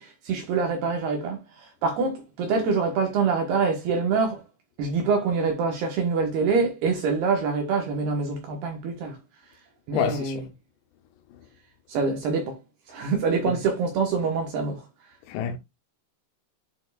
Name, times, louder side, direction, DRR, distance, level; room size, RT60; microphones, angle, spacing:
voice 1, 0.0-4.4 4.8-9.2 9.9-10.5 11.9-12.6 12.9-14.9, right 5 dB, 70° right, 2.7 m, -25 dB
voice 2, 9.9-10.4 15.3-15.6, left 9 dB, 80° left, 2.5 m, -27 dB
11.0 x 4.5 x 2.3 m
omnidirectional pair, 5.7 m